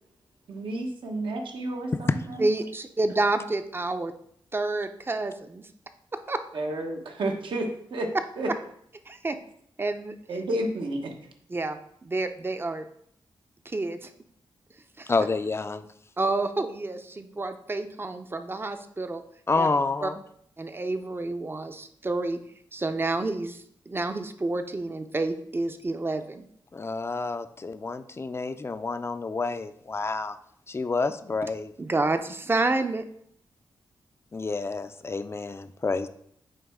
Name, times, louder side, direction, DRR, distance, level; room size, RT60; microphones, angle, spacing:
voice 1, 0.5-2.4 6.5-8.5 10.3-11.1, right 1 dB, 75° right, 3 dB, 1.0 m, -31 dB
voice 2, 2.4-4.1 4.5-5.7 6.3-6.4 9.1-9.4 9.8-10.1 11.5-12.8 13.7-14.1 15.0-15.1 16.2-19.2 19.6-19.7 20.0-20.1 20.6-22.4 22.7-26.4 31.4-31.5 31.8-33.0, right 2 dB, 25° right, 9 dB, 0.6 m, -29 dB
voice 3, 15.1-15.9 19.5-20.2 26.7-30.4 30.7-31.7 34.3-36.1, left 3 dB, 30° left, 11 dB, 0.4 m, -28 dB
8.9 x 3.1 x 3.5 m, 0.68 s
cardioid pair, 65°, 9 cm